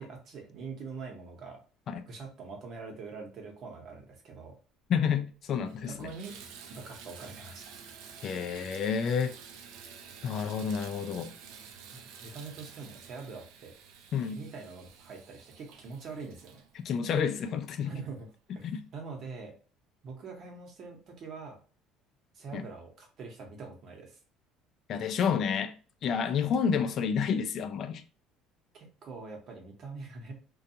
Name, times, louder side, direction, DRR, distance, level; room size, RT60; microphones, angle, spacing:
voice 1, 0.0-1.6 2.1-4.5 5.9-6.4 6.7-7.7 11.9-13.7 14.2-16.6 17.8-18.3 18.5-19.6 20.0-21.6 22.3-24.2 26.3-26.4 28.7-30.4, right 4 dB, 45° right, 0.9 m, -44 dB
voice 2, 4.9-6.1 8.2-9.4 10.2-11.3 14.1-14.4 16.8-17.9 18.6-18.8 22.5-22.6 24.9-25.7 26.0-28.0, left 7 dB, 45° left, 0.3 m, -29 dB
Water tap faucet / Bathtub (filling or washing), 5.0-5.1 5.5-17.9 18.6-18.7 19.2-19.3, right 6 dB, 80° right, 0.4 m, -50 dB
2.5 x 2.2 x 2.7 m
cardioid pair, 130°, 0 cm